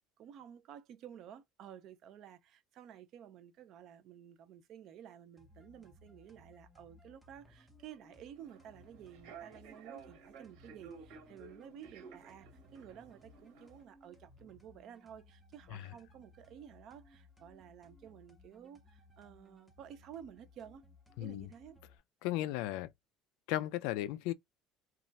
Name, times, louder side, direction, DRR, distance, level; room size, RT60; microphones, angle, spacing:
voice 1, 0.0-20.8 21.2-21.8, right 9 dB, 50° right, 0.6 m, -53 dB
sound 1, 5.4-22.0, left 2 dB, ahead, 0.6 m, -62 dB
Human voice / Subway metro underground, 8.3-13.8, right 6 dB, 75° right, 1.4 m, -54 dB
voice 2, 21.2-21.5 22.2-22.9 23.5-24.3, left 14 dB, 75° left, 0.3 m, -35 dB
2.3 x 2.1 x 3.9 m
cardioid pair, 140°, 0 cm